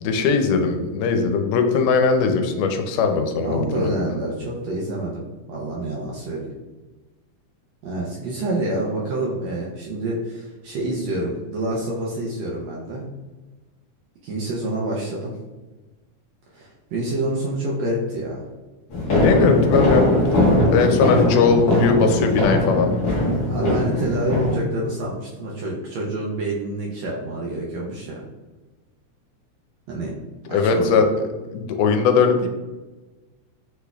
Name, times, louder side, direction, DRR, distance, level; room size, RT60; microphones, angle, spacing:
voice 1, 0.0-4.2 19.1-20.4 20.7-22.9 30.5-31.1 31.5-32.5, left 5 dB, 85° left, 5 dB, 2.1 m, -20 dB
voice 2, 3.4-6.5 7.8-13.0 14.2-15.4 16.5-18.5 23.5-28.2 29.9-30.1 30.5-31.0, right 1 dB, 75° right, -4 dB, 1.6 m, -27 dB
sound 1, 18.9-24.6, left 2 dB, 55° left, 1.0 m, -20 dB
6.3 x 3.3 x 2.3 m, 1.2 s
omnidirectional pair, 3.6 m